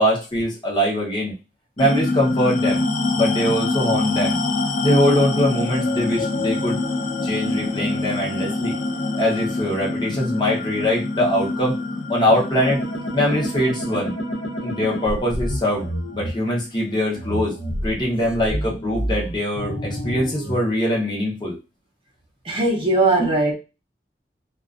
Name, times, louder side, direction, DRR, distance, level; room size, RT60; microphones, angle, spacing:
voice 1, 0.0-1.3 1.8-2.8 3.1-4.4 4.8-6.8 7.2-8.8 9.1-11.8 12.1-12.8 13.1-14.1 14.6-17.6 17.8-21.6, equal, 25° left, 0.7 m, -22 dB
sound 1, 1.8-16.6, left 3 dB, 45° left, 0.3 m, -26 dB
sound 2, 12.6-16.3 17.1-20.7, equal, 90° left, 0.8 m, -29 dB
voice 2, 22.4-23.5, right 2 dB, 30° right, 0.6 m, -19 dB
2.4 x 2.2 x 2.4 m
head